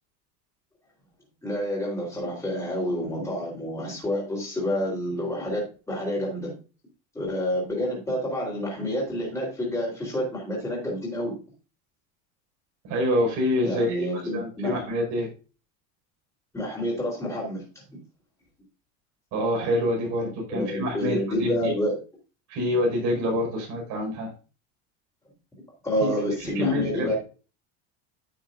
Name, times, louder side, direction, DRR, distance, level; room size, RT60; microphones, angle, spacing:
voice 1, 1.4-6.6 7.1-11.4 13.6-14.7 16.5-17.6 20.2-22.0 25.8-27.1, equal, 10° left, -4 dB, 3.7 m, -28 dB
voice 2, 12.8-14.1 14.3-15.3 19.3-21.7 22.5-24.3 26.4-27.2, left 1 dB, 55° right, -2 dB, 5.2 m, -26 dB
10.0 x 6.9 x 2.6 m, 0.33 s
supercardioid pair, 135°, 37 cm